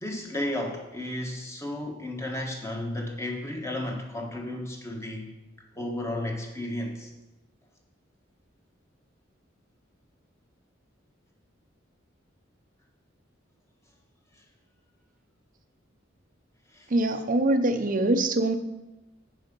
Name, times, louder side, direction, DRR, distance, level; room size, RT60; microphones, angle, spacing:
voice 1, 0.0-5.3 5.7-7.1 16.7-16.9, left 1 dB, 15° left, 1 dB, 1.3 m, -33 dB
voice 2, 16.9-18.6, right 2 dB, 45° right, 8 dB, 0.7 m, -23 dB
9.6 x 5.0 x 5.3 m, 1.0 s
head